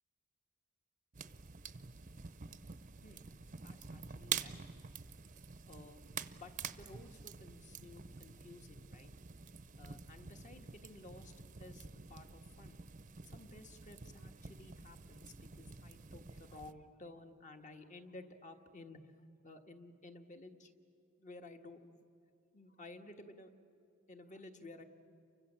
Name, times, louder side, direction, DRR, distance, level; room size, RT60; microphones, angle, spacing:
sound 1, 1.1-16.7, right 7 dB, 35° right, 0.7 m, -47 dB
voice 1, 3.6-4.6 5.7-6.0 6.4-9.1 9.8-11.3 11.6-12.8 13.2-19.1 19.4-20.7 21.2-22.0 22.5-23.5 24.1-24.8, left 2 dB, 35° left, 6 dB, 1.6 m, -54 dB
30.0 x 24.5 x 7.5 m, 2.6 s
head